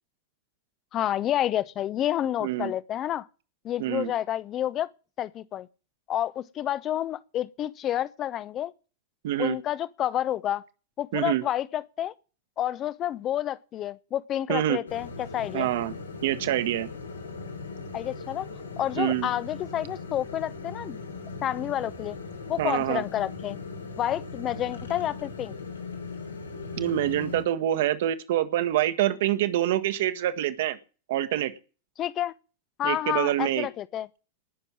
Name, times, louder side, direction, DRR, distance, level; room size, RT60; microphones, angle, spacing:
voice 1, 0.9-3.3 3.6-4.9 5.2-5.7 6.1-8.7 9.4-10.6 11.0-12.1 12.6-15.7 17.9-18.5 18.8-21.0 21.4-22.2 22.5-23.6 24.0-25.5 32.0-32.3 32.8-34.1, left 11 dB, 30° left, 0.8 m, -29 dB
voice 2, 2.4-2.7 3.8-4.1 9.2-9.6 11.1-11.4 14.5-14.8 15.5-15.9 16.2-16.9 19.0-19.3 22.6-23.0 26.8-30.8 31.1-31.5 32.8-33.7, right 13 dB, 55° right, 1.6 m, -26 dB
sound 1, 14.9-27.4, left 4 dB, 80° left, 3.1 m, -39 dB
19.5 x 7.0 x 7.4 m
figure-of-eight pair, 90°, 0 cm